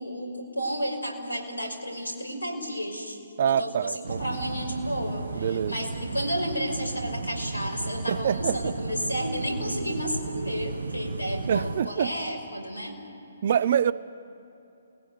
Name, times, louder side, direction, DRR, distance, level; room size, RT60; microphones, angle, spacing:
voice 1, 0.0-3.2 3.4-13.0, equal, 80° left, 5.8 m, -32 dB
voice 2, 3.4-4.2 5.4-5.7 8.1-8.7 11.5-12.1 13.4-13.9, right 8 dB, 45° right, 0.7 m, -25 dB
sound 1, 4.0-11.8, right 3 dB, 65° right, 1.4 m, -34 dB
29.5 x 20.5 x 9.5 m
figure-of-eight pair, 135°, 0 cm